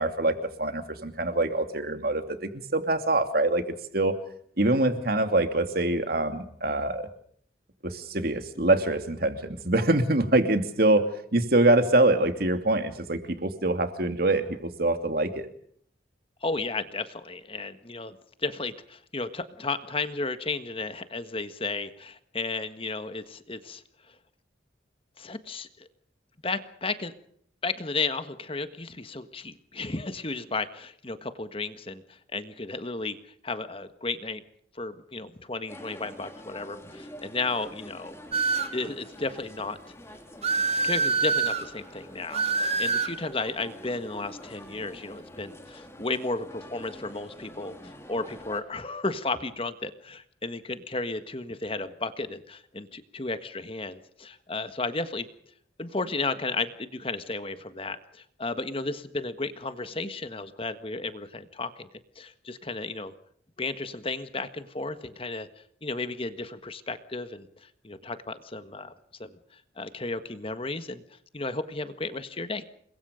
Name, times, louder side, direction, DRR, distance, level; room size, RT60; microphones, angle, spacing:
voice 1, 0.0-3.6 3.9-4.2 4.6-7.1 7.8-15.5, right 2 dB, 50° right, 8 dB, 2.7 m, -24 dB
voice 2, 16.4-23.8 25.2-25.9 26.4-27.1 27.6-33.2 33.4-34.4 34.8-38.2 38.7-39.8 40.8-47.7 48.1-55.3 55.8-61.9 62.1-63.1 63.6-65.5 65.8-68.9 69.2-69.4 69.8-71.0 71.3-72.6, left 3 dB, 30° left, 10 dB, 1.6 m, -33 dB
sound 1, 35.7-48.6, left 1 dB, 15° left, 3.3 m, -46 dB
sound 2, 38.3-38.8 40.4-41.6 42.3-43.2, right 4 dB, 35° right, 2.0 m, -25 dB
29.5 x 22.5 x 5.2 m, 0.63 s
head